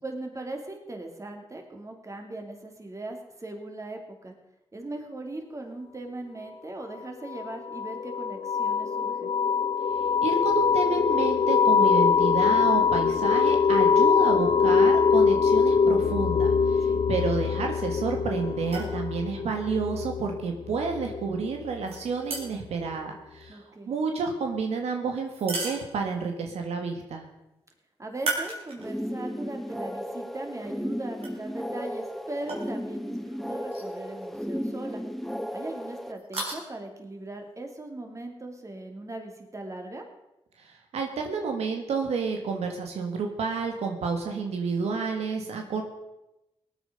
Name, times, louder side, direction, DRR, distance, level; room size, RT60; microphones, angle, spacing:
voice 1, 0.0-4.3 4.7-9.3 16.8-17.0 23.5-23.9 28.0-35.0 35.5-40.0, right 2 dB, 30° right, 3 dB, 3.0 m, -39 dB
sound 1, 7.3-21.7, left 6 dB, 65° left, 0.6 m, -23 dB
voice 2, 10.2-27.2 40.6-45.8, right 4 dB, 85° right, 3 dB, 1.7 m, -30 dB
sound 2, 18.6-19.0 21.9-22.7 25.3-26.3 28.1-29.1 29.6-29.7 31.2-31.3 32.5-32.7 33.7-33.9 34.2-34.3 36.1-36.6, right 3 dB, 70° right, 4.7 m, -34 dB
sound 3, 28.8-36.1, equal, ahead, 1.1 m, -34 dB
18.5 x 9.2 x 5.2 m, 0.93 s
cardioid pair, 60°, 11 cm